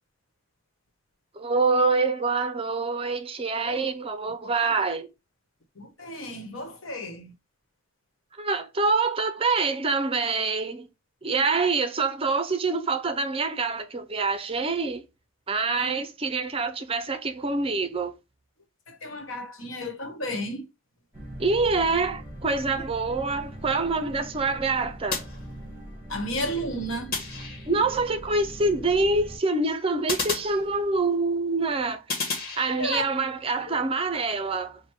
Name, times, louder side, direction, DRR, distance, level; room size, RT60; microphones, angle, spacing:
voice 1, 1.4-5.1 8.4-10.9 11.2-15.0 15.5-18.1 21.4-25.2 27.7-34.8, right 3 dB, 30° right, 0.5 m, -26 dB
voice 2, 5.8-7.3 15.8-15.9 19.0-20.6 26.1-27.1 32.8-33.0, equal, 80° left, 1.1 m, -32 dB
sound 1, 21.1-29.4, right 1 dB, 5° right, 2.0 m, -41 dB
sound 2, 25.1-26.0 27.1-28.0 30.1-31.2 32.1-33.2, left 4 dB, 50° left, 1.3 m, -33 dB
4.6 x 2.2 x 4.6 m
head